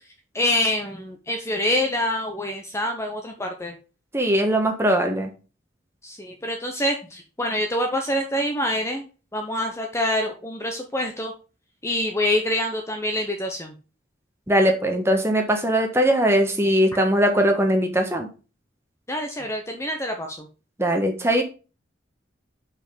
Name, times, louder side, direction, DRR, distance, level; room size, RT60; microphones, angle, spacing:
voice 1, 0.3-3.7 6.0-9.1 9.3-11.3 11.8-13.7 19.1-20.5, left 1 dB, 15° left, 3 dB, 0.8 m, -26 dB
voice 2, 4.1-5.3 14.5-18.3 20.8-21.4, equal, 15° right, 3 dB, 1.3 m, -20 dB
5.6 x 5.1 x 5.1 m, 0.34 s
head